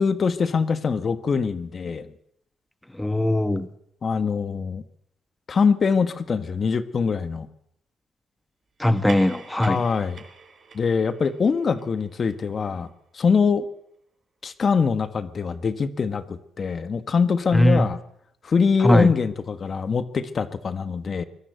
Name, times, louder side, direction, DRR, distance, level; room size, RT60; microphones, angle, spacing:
voice 1, 0.0-2.1 4.0-4.8 5.5-7.5 9.7-10.2 10.7-12.9 13.1-13.6 14.4-18.0 18.4-21.2, left 5 dB, 45° left, 12 dB, 1.4 m, -23 dB
voice 2, 3.0-3.7 8.8-9.8 17.5-17.9 18.8-19.1, left 1 dB, 10° left, 11 dB, 1.4 m, -19 dB
sound 1, 8.8-13.7, right 4 dB, 45° right, 5.1 m, -46 dB
23.0 x 19.0 x 8.1 m, 0.73 s
cardioid pair, 90°, 0 cm